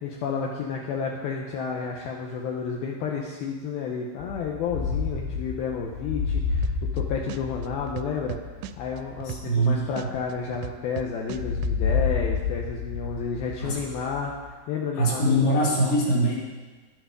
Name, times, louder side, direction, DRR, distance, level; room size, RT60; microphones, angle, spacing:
voice 1, 0.0-8.4 8.8-15.7, left 6 dB, 75° left, -1 dB, 2.6 m, -31 dB
sound 1, 4.2-10.9 11.3-14.5, left 5 dB, 90° left, 3.3 m, -30 dB
sound 2, 6.6-7.0 7.3-9.7 10.0-11.8, right 13 dB, 85° right, 2.7 m, -36 dB
voice 2, 9.2-9.9 13.6-13.8 14.9-16.4, right 1 dB, 55° left, -6 dB, 4.3 m, -22 dB
12.0 x 11.0 x 5.2 m, 1.3 s
omnidirectional pair, 4.8 m